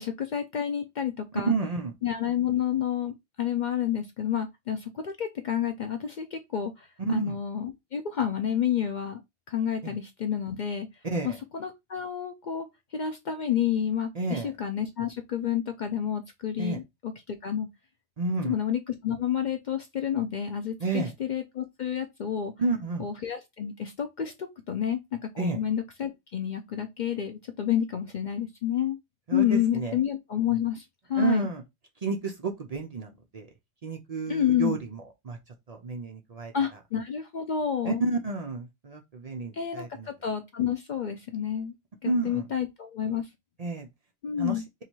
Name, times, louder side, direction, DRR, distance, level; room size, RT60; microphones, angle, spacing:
voice 1, 0.0-1.5 2.0-9.2 9.5-10.9 11.2-12.7 12.9-17.7 18.4-22.5 23.0-29.0 29.3-30.8 31.1-31.5 34.3-34.8 36.5-38.0 39.5-41.7 42.0-43.3 44.2-44.6, left 9 dB, 60° left, 0.5 m, -29 dB
voice 2, 1.3-1.9 7.0-7.4 9.8-9.9 11.0-11.4 14.2-14.5 16.6-16.8 18.2-18.6 20.8-21.1 22.6-23.1 25.4-25.6 29.3-30.0 31.2-31.6 32.0-33.5 33.8-35.4 35.7-36.5 37.9-40.1 42.0-42.4 43.6-43.9 44.4-44.6, right 4 dB, 45° right, 0.5 m, -30 dB
2.8 x 2.7 x 4.4 m
omnidirectional pair, 1.1 m